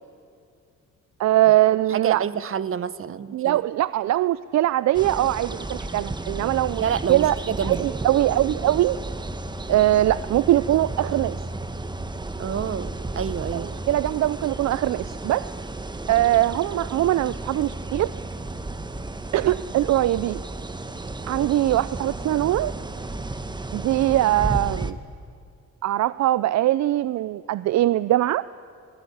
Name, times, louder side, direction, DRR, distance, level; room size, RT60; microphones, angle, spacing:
voice 1, 1.2-2.2 3.3-6.8 7.1-7.4 7.6-9.0 9.7-11.3 13.9-15.5 16.1-18.1 19.3-20.4 21.3-22.7 23.7-25.0 25.8-28.4, right 14 dB, 65° right, 17 dB, 0.5 m, -21 dB
voice 2, 1.9-3.6 6.8-7.9 12.4-13.7, right 8 dB, 45° right, 17 dB, 0.9 m, -28 dB
sound 1, 4.9-24.9, right 2 dB, 15° right, 1.2 m, -33 dB
25.0 x 18.0 x 10.0 m, 2.4 s
cardioid pair, 90°, 30 cm